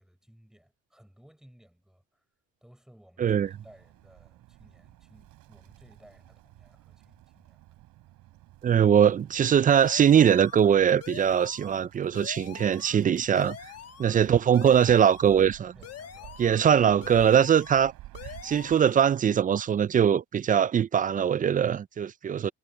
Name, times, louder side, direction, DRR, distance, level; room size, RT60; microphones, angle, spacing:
voice 1, 0.0-2.3 2.6-7.8 15.7-16.6, equal, ahead, 4.8 m, -57 dB
voice 2, 3.2-3.5 8.6-13.7 14.0-15.7 16.4-17.9 18.4-22.5, right 8 dB, 25° right, 0.3 m, -22 dB
Bird, 3.4-18.8, right 16 dB, 80° right, 3.5 m, -52 dB
sound 1, 9.8-10.7 11.0-11.9 12.1-13.0 13.3-14.2 14.5-15.4 15.8-16.7 17.0-17.9 18.1-19.0, left 10 dB, 50° left, 1.3 m, -45 dB
cardioid pair, 110°, 33 cm